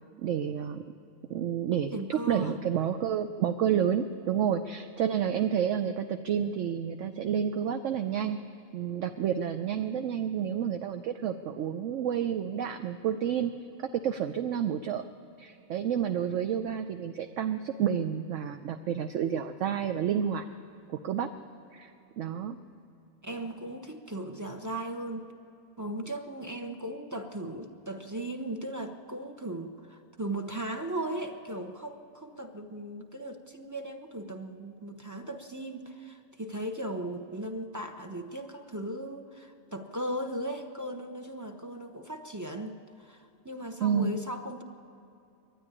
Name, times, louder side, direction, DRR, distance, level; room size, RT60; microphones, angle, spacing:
voice 1, 0.2-0.8 1.3-8.4 8.7-13.5 14.0-15.0 15.4-20.4 21.0-21.3 21.7-21.9 22.2-22.6 43.8-44.2, right 8 dB, 65° right, 7 dB, 0.9 m, -30 dB
voice 2, 1.9-2.6 23.2-25.3 25.8-44.6, right 1 dB, 20° right, 5 dB, 0.6 m, -37 dB
21.0 x 12.5 x 9.8 m, 2.7 s
omnidirectional pair, 1.5 m